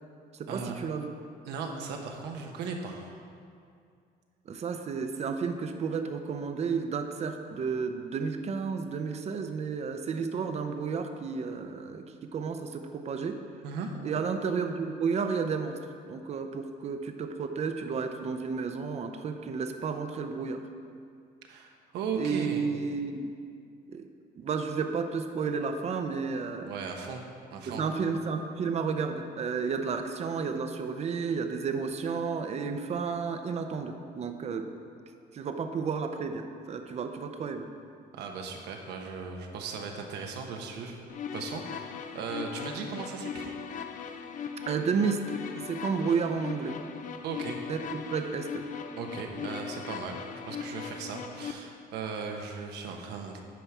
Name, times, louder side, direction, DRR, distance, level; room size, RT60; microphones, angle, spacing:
voice 1, 0.3-1.1 4.5-12.0 12.3-13.4 14.0-15.8 16.0-20.6 22.2-23.3 23.9-24.1 24.4-26.7 27.7-34.7 35.3-37.7 44.7-46.8 47.7-48.7, right 5 dB, 40° right, 6 dB, 0.6 m, -32 dB
voice 2, 1.4-3.2 13.6-13.9 21.5-22.7 26.6-27.2 27.5-27.8 38.1-41.0 41.3-43.6 47.2-47.6 49.0-53.4, right 5 dB, 85° right, 3 dB, 1.1 m, -37 dB
sound 1, 41.1-51.5, left 6 dB, 50° left, 0.6 m, -39 dB
9.3 x 5.7 x 4.7 m, 2.3 s
cardioid pair, 110°, 17 cm